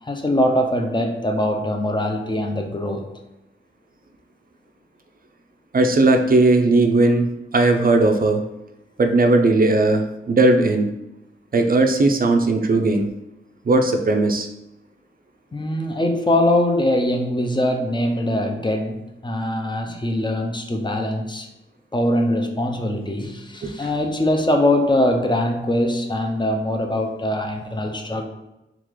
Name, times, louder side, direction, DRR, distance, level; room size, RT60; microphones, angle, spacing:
voice 1, 0.0-3.1 15.5-21.5 21.9-28.2, left 1 dB, 20° left, 3 dB, 0.5 m, -22 dB
voice 2, 5.7-8.4 9.0-10.9 11.5-13.1 13.6-14.5 23.6-23.7, right 2 dB, 45° right, 5 dB, 0.5 m, -17 dB
3.7 x 2.4 x 3.1 m, 0.94 s
cardioid pair, 60°, 21 cm